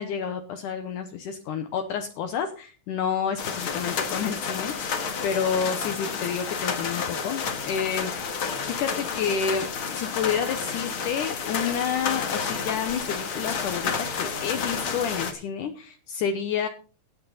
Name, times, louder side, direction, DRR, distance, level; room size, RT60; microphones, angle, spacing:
voice 1, 0.0-5.0 5.2-8.3 8.6-9.7 9.9-16.7, left 7 dB, 70° left, 6 dB, 2.3 m, -29 dB
sound 1, 3.4-15.3, left 6 dB, 50° left, 1.8 m, -30 dB
16.0 x 9.4 x 4.1 m, 0.37 s
omnidirectional pair, 4.2 m